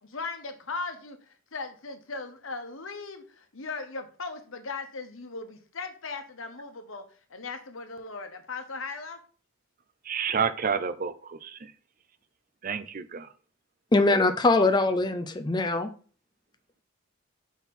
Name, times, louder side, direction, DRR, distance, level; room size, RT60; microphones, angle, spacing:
voice 1, 0.0-7.0 7.3-9.2, left 4 dB, 70° left, 7 dB, 1.1 m, -38 dB
voice 2, 10.1-11.6 12.6-13.3, right 6 dB, 40° right, 13 dB, 0.5 m, -29 dB
voice 3, 13.9-15.9, left 2 dB, 20° left, 8 dB, 0.5 m, -22 dB
6.1 x 4.3 x 5.4 m, 0.41 s
head